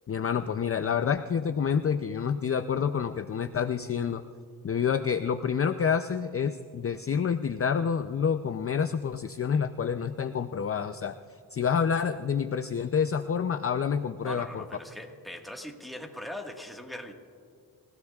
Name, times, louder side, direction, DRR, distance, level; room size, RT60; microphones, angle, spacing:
voice 1, 0.1-4.2 4.6-14.6, left 7 dB, 35° left, 9 dB, 0.5 m, -28 dB
voice 2, 14.2-17.1, left 1 dB, ahead, 1 dB, 1.5 m, -40 dB
27.0 x 16.5 x 2.4 m, 2.4 s
wide cardioid pair, 95°, 40 cm